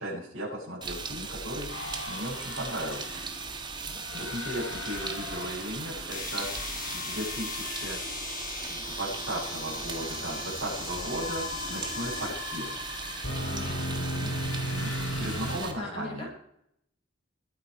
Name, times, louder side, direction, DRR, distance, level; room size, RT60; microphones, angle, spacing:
voice 1, 0.0-3.2 4.1-8.0 8.7-12.8 14.7-16.3, equal, 85° right, -8 dB, 7.4 m, -36 dB
sound 1, 0.8-15.7, right 4 dB, 20° right, 1.6 m, -39 dB
sound 2, 1.7-15.6, left 1 dB, 75° left, 3.6 m, -38 dB
voice 2, 3.9-4.4 13.4-14.4 15.5-16.3, left 1 dB, 30° left, -2 dB, 6.6 m, -42 dB
sound 3, 6.1-12.3, left 4 dB, 45° left, 4.0 m, -39 dB
21.0 x 9.3 x 4.9 m, 0.70 s
head